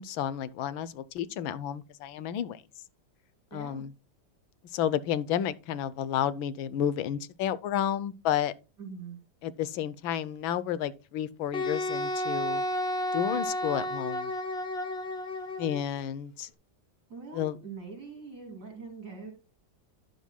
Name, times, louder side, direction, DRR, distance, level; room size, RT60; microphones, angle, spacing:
voice 1, 0.0-2.6 3.5-3.9 4.7-8.5 9.4-12.6 13.1-14.3 15.6-16.5 17.3-17.6, left 10 dB, 85° left, 1.5 m, -31 dB
voice 2, 3.5-3.8 8.8-9.2 17.1-19.3, right 5 dB, 55° right, 3.9 m, -43 dB
Wind instrument woodwind instrument, 11.5-15.8, left 1 dB, 35° left, 1.3 m, -32 dB
12.0 x 9.2 x 2.2 m
omnidirectional pair, 2.1 m